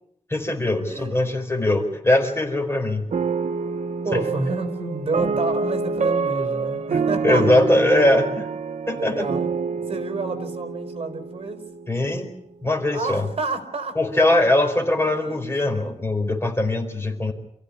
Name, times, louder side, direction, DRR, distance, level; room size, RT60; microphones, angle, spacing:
voice 1, 0.3-3.1 4.1-4.2 7.2-8.5 8.9-9.3 11.9-12.4 12.6-13.3 13.9-17.3, left 1 dB, 20° left, 4 dB, 4.6 m, -21 dB
voice 2, 0.9-1.4 4.0-7.6 8.9-9.5 9.9-11.6 12.9-14.0 15.0-16.2, right 3 dB, 50° right, 6 dB, 4.6 m, -29 dB
sound 1, 3.1-12.3, right 5 dB, 75° right, 0.9 m, -27 dB
28.5 x 15.5 x 10.0 m, 0.73 s
wide cardioid pair, 130°, 12 cm